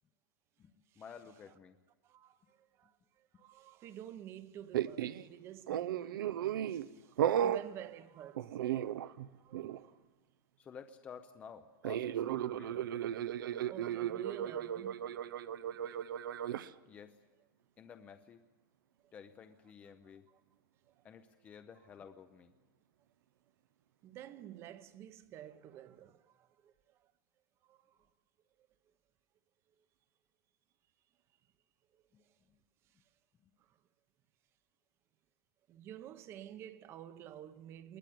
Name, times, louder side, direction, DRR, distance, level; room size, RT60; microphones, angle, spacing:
voice 1, 0.6-1.8 10.6-12.9 16.8-17.2 17.8-18.4 19.1-20.3 21.0-22.5 32.1-32.2 32.5-32.6 33.4-33.5, left 7 dB, 15° left, 0.7 m, -53 dB
voice 2, 2.0-8.9 9.4-10.0 13.4-15.1 15.5-16.0 19.0-19.1 20.3-20.4 21.0-21.1 24.0-27.1 27.6-28.1 31.9-32.3 32.9-33.0 33.6-33.8 35.7-38.0, right 11 dB, 25° right, 0.9 m, -51 dB
sound 1, 4.7-5.2 5.7-6.9 7.2-7.7 8.4-9.3 9.5-9.8 11.8-16.7, right 10 dB, 80° right, 0.8 m, -35 dB
22.0 x 19.5 x 9.3 m
supercardioid pair, 175°, 11 cm